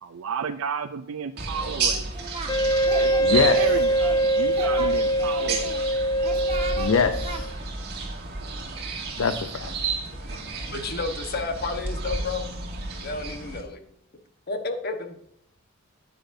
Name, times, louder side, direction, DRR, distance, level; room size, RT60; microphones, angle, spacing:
voice 1, 0.0-2.1 3.0-5.8, right 6 dB, 70° right, 8 dB, 0.4 m, -32 dB
sound 1, 1.4-13.6, right 4 dB, 55° right, 2.1 m, -32 dB
Singing, 1.8-2.5 2.8-4.2 4.5-5.8 6.2-6.9 7.2-7.4, right 3 dB, 30° right, 1.3 m, -36 dB
Wind instrument woodwind instrument, 2.5-7.5, right 1 dB, 20° left, 0.4 m, -23 dB
voice 2, 3.2-3.6 6.8-7.5 9.2-9.7, left 5 dB, 75° left, 9 dB, 0.6 m, -23 dB
voice 3, 10.7-12.5 13.0-13.8 14.5-15.2, left 3 dB, 50° left, 6 dB, 1.2 m, -31 dB
10.5 x 9.3 x 2.7 m, 0.75 s
head